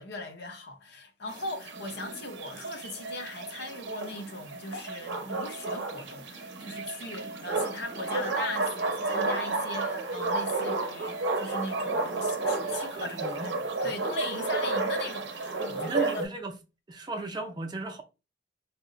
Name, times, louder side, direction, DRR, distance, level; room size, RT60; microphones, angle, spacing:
voice 1, 0.0-16.2, left 2 dB, 60° left, 0.7 m, -39 dB
sound 1, 1.3-16.3, right 3 dB, 65° right, 0.6 m, -32 dB
voice 2, 13.0-13.5 13.8-13.9 15.7-16.5 16.9-18.0, right 2 dB, 25° right, 0.4 m, -36 dB
2.8 x 2.1 x 3.7 m
head